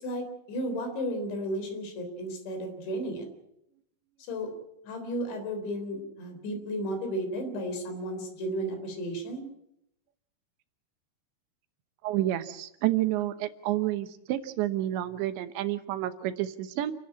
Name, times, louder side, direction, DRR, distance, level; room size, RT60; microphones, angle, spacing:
voice 1, 0.0-3.3 4.3-4.5 4.9-9.4, equal, 85° left, 6 dB, 6.1 m, -33 dB
voice 2, 12.0-16.9, right 14 dB, 85° right, 10 dB, 3.4 m, -29 dB
29.0 x 11.5 x 8.7 m, 0.80 s
omnidirectional pair, 5.0 m